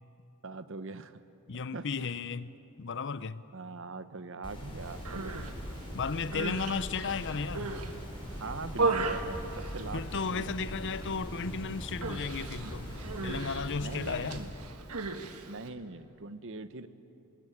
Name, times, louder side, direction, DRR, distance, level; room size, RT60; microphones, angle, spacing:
voice 1, 0.4-1.2 1.7-1.9 3.5-5.4 8.4-10.7 13.8-14.5 15.5-16.9, right 3 dB, 60° right, 1.0 m, -42 dB
voice 2, 1.5-3.4 5.9-7.8 9.9-13.0 13.2-14.4, left 5 dB, 55° left, 0.7 m, -34 dB
sound 1, 4.4-14.4, equal, 25° left, 5.7 m, -41 dB
Human voice, 4.9-5.5 6.1-7.9 8.3-10.3 10.6-11.1 11.3-11.6 12.0-15.7, right 3 dB, 90° right, 1.6 m, -36 dB
sound 2, 7.2-13.1, equal, 10° right, 0.8 m, -50 dB
26.0 x 20.5 x 8.7 m
head